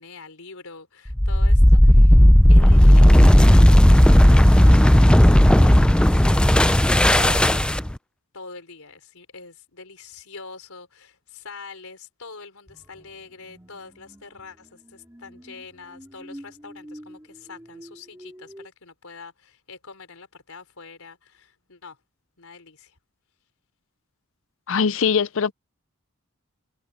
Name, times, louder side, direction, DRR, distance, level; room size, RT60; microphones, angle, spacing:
voice 1, 0.0-2.2 2.5-6.8 7.1-7.6 8.3-22.0 22.4-23.0, left 4 dB, 80° left, 4.0 m, -44 dB
sound 1, 1.1-8.0, equal, 5° left, 0.4 m, -13 dB
sound 2, 12.7-18.7, equal, 10° right, 4.3 m, -46 dB
voice 2, 24.7-25.5, left 6 dB, 65° left, 0.6 m, -21 dB
head